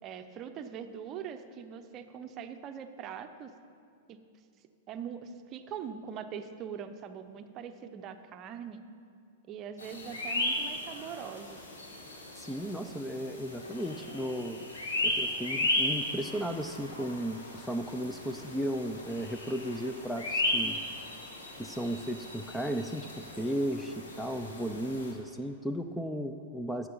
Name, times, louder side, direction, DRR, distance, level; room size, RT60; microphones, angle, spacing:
voice 1, 0.0-3.5 4.1-4.2 4.9-8.8 9.5-11.6, right 8 dB, 35° right, 8 dB, 0.7 m, -42 dB
sound 1, 9.8-25.1, left 1 dB, 75° left, 2.0 m, -36 dB
voice 2, 12.4-14.6 15.0-20.8 21.6-26.9, equal, 5° left, 7 dB, 0.5 m, -35 dB
11.0 x 7.3 x 5.5 m, 2.4 s
hypercardioid pair, 105°, 0 cm